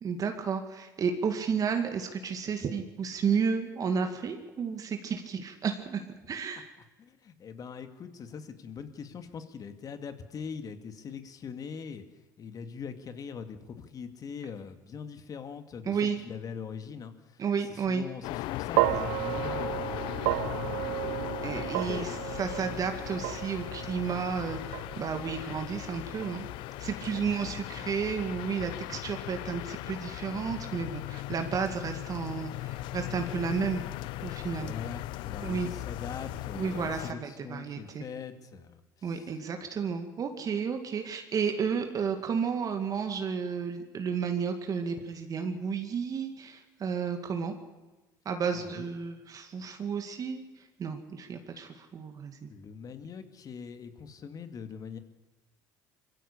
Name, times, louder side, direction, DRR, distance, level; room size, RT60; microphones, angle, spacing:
voice 1, 0.0-6.7 15.9-16.2 17.4-18.0 21.4-22.1 22.4-26.5 26.8-33.8 34.2-34.7 35.4-35.7 36.5-38.0 39.0-47.5 48.3-50.4 50.8-52.5, right 6 dB, 45° right, 6 dB, 2.2 m, -32 dB
voice 2, 7.0-12.0 12.4-21.4 21.7-22.2 27.1-27.7 34.5-39.3 48.5-48.9 52.5-55.0, left 6 dB, 45° left, 9 dB, 2.2 m, -42 dB
sound 1, 18.2-37.1, left 17 dB, 70° left, 0.6 m, -38 dB
sound 2, 18.8-27.1, right 19 dB, 75° right, 0.7 m, -33 dB
23.0 x 15.5 x 8.5 m, 1.2 s
hypercardioid pair, 75°, 9 cm